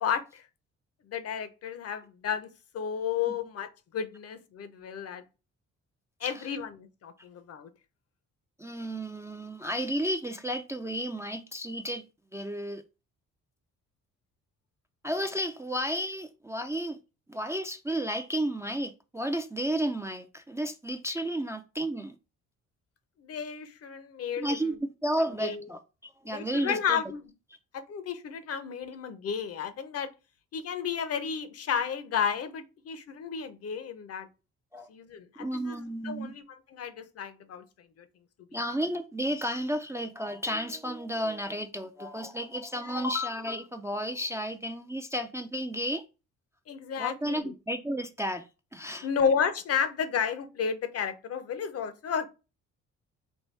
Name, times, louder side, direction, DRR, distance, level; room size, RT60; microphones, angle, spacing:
voice 1, 0.0-0.4 1.1-2.5 2.7-5.2 6.2-7.7 23.2-24.7 25.4-25.7 26.3-27.3 27.7-30.1 30.5-34.3 34.9-36.4 36.7-37.6 42.8-43.0 46.7-47.5 49.0-52.3, left 7 dB, 55° left, 0.6 m, -32 dB
voice 2, 8.6-12.0 12.3-12.8 15.0-17.0 17.3-22.2 24.4-24.8 25.0-27.0 34.7-34.9 35.4-36.3 38.5-46.0 47.0-48.4 48.7-49.1, equal, 10° right, 0.3 m, -32 dB
4.4 x 2.6 x 3.2 m
cardioid pair, 90°, 30 cm